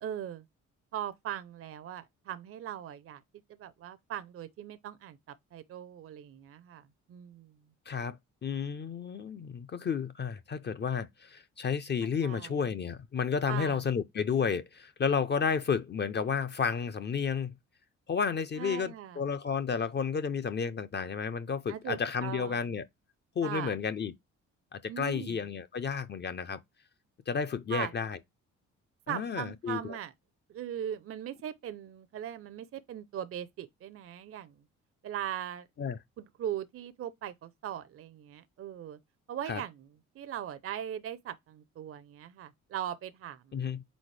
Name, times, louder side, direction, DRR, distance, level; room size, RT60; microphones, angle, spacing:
voice 1, 0.0-0.4 0.9-3.2 3.6-5.2 5.5-7.5 12.2-12.7 13.5-13.8 18.6-19.2 21.7-22.6 23.4-23.7 24.9-25.4 27.7-27.9 29.1-30.1 30.5-34.5 35.0-35.7 36.4-39.0 39.3-39.9 40.2-43.8, right 10 dB, 50° right, 0.5 m, -39 dB
voice 2, 7.9-8.2 8.4-17.5 18.1-22.8 23.4-24.1 24.7-26.6 27.3-28.2 29.1-30.0 35.8-36.0 39.5-39.6 43.5-43.8, left 6 dB, 35° left, 0.5 m, -32 dB
4.2 x 4.0 x 3.2 m
cardioid pair, 90°, 30 cm